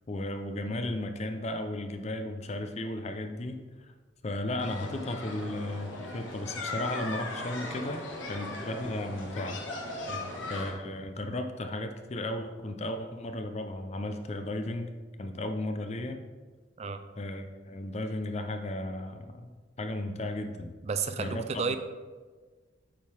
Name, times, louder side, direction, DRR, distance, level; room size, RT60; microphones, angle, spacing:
voice 1, 0.1-3.6 4.2-9.6 10.5-16.2 17.2-19.5 19.8-20.7 21.2-21.8, left 1 dB, 35° left, 6 dB, 0.5 m, -35 dB
sound 1, 4.6-10.7, left 2 dB, 90° left, 1.3 m, -38 dB
voice 2, 20.8-21.8, right 5 dB, 35° right, 9 dB, 0.3 m, -32 dB
8.4 x 3.8 x 4.8 m, 1.4 s
head